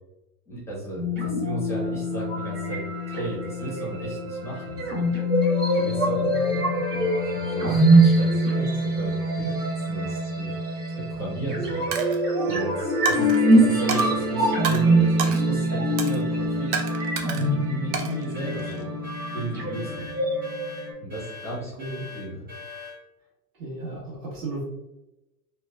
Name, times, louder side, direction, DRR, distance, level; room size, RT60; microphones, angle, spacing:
voice 1, 0.5-2.8 3.1-5.1 5.7-6.3 6.9-8.4 9.0-9.1 9.9-10.6 10.9-11.9 12.4-16.7 17.3-18.9 19.3-20.1 21.0-21.7 22.1-22.5, right 1 dB, 5° left, -6 dB, 0.5 m, -34 dB
sound 1, 1.0-20.9, right 1 dB, 80° right, 1.4 m, -24 dB
voice 2, 6.2-6.8 8.5-8.8 21.8-22.1 23.6-24.6, right 2 dB, 45° right, -4 dB, 1.3 m, -35 dB
Coin (dropping), 11.9-12.2 13.0-13.4 13.9-14.1 14.6-14.8 15.2-15.4 16.0-16.2 16.7-17.5 17.9-18.9, right 6 dB, 65° right, 0.6 m, -30 dB
sound 2, 18.3-23.0, left 5 dB, 20° right, 1.3 m, -42 dB
2.9 x 2.1 x 2.2 m, 0.98 s
supercardioid pair, 140°, 48 cm